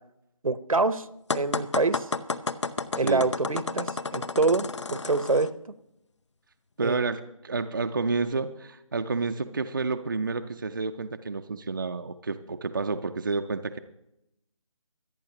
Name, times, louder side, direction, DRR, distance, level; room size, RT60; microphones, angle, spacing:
voice 1, 0.4-1.1 1.3-2.1 3.0-5.5 6.8-7.0, right 3 dB, 80° right, 13 dB, 0.9 m, -26 dB
sound 1, 1.3-5.5, left 4 dB, 55° left, 0.6 m, -31 dB
voice 2, 6.8-13.8, right 4 dB, 35° right, 6 dB, 0.5 m, -30 dB
25.5 x 9.0 x 2.9 m, 0.82 s
figure-of-eight pair, 160°, 18 cm